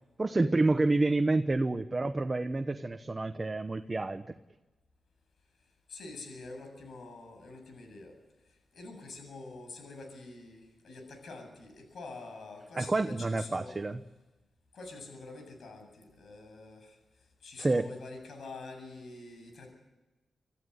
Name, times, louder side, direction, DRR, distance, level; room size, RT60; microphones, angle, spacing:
voice 1, 0.2-4.2 12.8-14.0 17.6-17.9, right 2 dB, 25° right, 8 dB, 1.0 m, -28 dB
voice 2, 5.9-8.1 8.5-13.7 14.7-17.0 17.4-19.7, left 3 dB, 75° left, 4 dB, 7.7 m, -46 dB
27.0 x 15.0 x 9.9 m, 1.1 s
wide cardioid pair, 115°, 0 cm